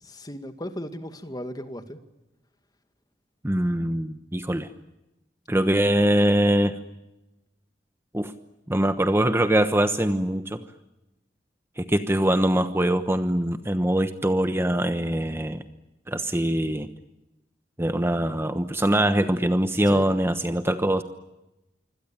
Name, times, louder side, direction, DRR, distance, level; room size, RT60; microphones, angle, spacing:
voice 1, 0.0-2.0 19.9-20.1, equal, 20° left, 8 dB, 2.1 m, -36 dB
voice 2, 3.4-4.7 5.5-6.7 8.1-8.3 8.7-10.6 11.8-15.6 16.1-16.9 17.8-21.0, right 1 dB, 15° right, 9 dB, 1.1 m, -23 dB
26.0 x 25.5 x 8.9 m, 0.96 s
head